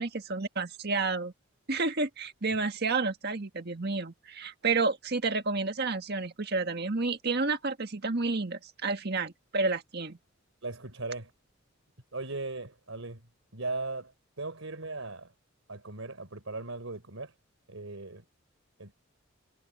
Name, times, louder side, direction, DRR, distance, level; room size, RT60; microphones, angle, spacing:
voice 1, 0.0-1.3 1.7-10.2, right 3 dB, 50° right, 1.7 m, -30 dB
voice 2, 10.6-11.3 12.1-13.2 13.5-14.1 14.4-15.3 15.7-17.3 17.7-18.2 18.8-18.9, right 3 dB, 75° right, 3.8 m, -38 dB
head